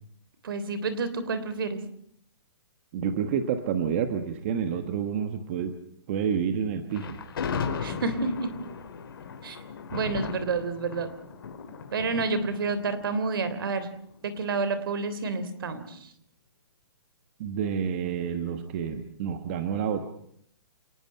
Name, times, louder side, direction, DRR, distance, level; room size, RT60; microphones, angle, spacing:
voice 1, 0.4-1.8 7.8-8.5 9.4-9.6 9.9-11.1 11.9-13.9 14.2-16.0, right 4 dB, 55° right, 13 dB, 3.3 m, -29 dB
voice 2, 2.9-5.8 6.1-7.2 17.4-20.0, right 7 dB, 25° right, 8 dB, 1.3 m, -29 dB
Thunder, 6.9-14.1, left 6 dB, 55° left, 3.9 m, -36 dB
28.0 x 19.5 x 5.8 m, 0.67 s
hypercardioid pair, 170°, 14 cm